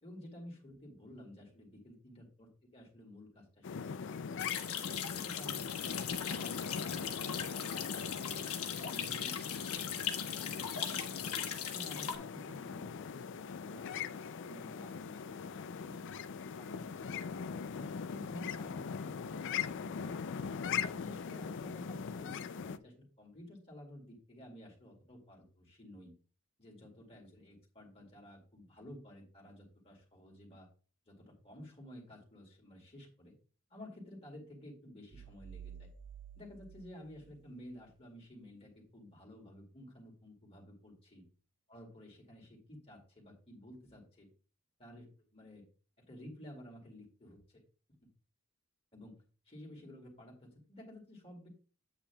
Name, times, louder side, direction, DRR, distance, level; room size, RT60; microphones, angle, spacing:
voice 1, 0.0-4.7 5.1-8.5 8.9-11.2 11.7-14.0 14.4-17.2 17.8-20.2 20.9-26.1 26.6-30.7 31.1-33.3 33.7-35.9 36.3-41.2 41.7-44.3 44.8-45.6 46.1-47.6 48.9-49.2 49.5-51.5, left 1 dB, 30° left, -1 dB, 2.2 m, -53 dB
sound 1, 3.6-22.8, left 6 dB, 60° left, 0.4 m, -41 dB
sound 2, 4.4-12.1, left 9 dB, 90° left, 1.3 m, -39 dB
sound 3, 35.1-38.0, right 8 dB, 85° right, 0.5 m, -52 dB
8.7 x 8.3 x 2.3 m, 0.36 s
head